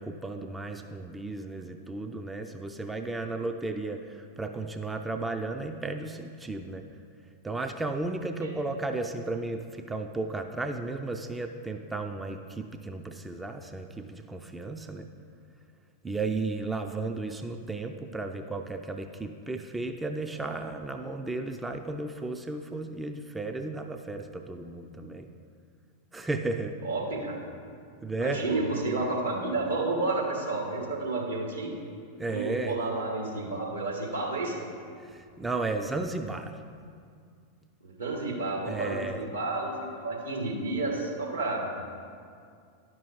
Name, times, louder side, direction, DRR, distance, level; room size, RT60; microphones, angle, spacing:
voice 1, 0.0-6.9 7.4-15.1 16.0-25.3 26.1-26.8 28.0-28.4 32.2-32.8 35.1-36.5 38.7-39.2, right 3 dB, 10° right, 6 dB, 0.4 m, -34 dB
voice 2, 26.8-27.4 28.2-31.7 32.3-34.5 37.8-41.8, right 2 dB, 75° right, -1 dB, 1.7 m, -31 dB
10.5 x 6.0 x 4.6 m, 2.3 s
figure-of-eight pair, 90°, 0 cm